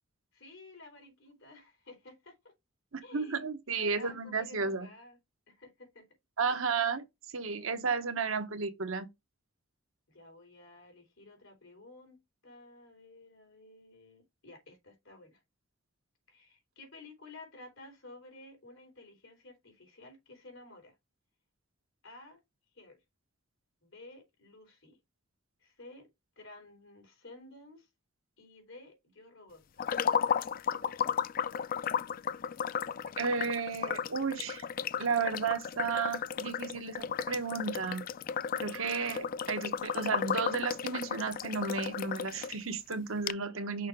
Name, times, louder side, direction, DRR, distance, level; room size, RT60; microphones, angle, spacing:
voice 1, 0.3-2.5 3.0-3.4 3.7-5.2 5.5-6.1 7.6-7.8 10.1-15.4 16.3-20.9 22.0-22.4 22.7-23.0 23.8-25.0 25.6-26.1 26.4-27.9 28.4-29.6 42.7-42.8, left 2 dB, 65° left, 3.9 m, -53 dB
voice 2, 2.9-4.9 6.4-7.0 7.3-9.1 30.8-30.9 33.2-34.6 35.0-38.0 38.6-43.9, right 5 dB, 75° right, 1.0 m, -33 dB
sound 1, 29.8-42.6 42.9-43.0 43.3-43.4, left 7 dB, 40° left, 0.3 m, -34 dB
6.3 x 4.7 x 3.6 m
head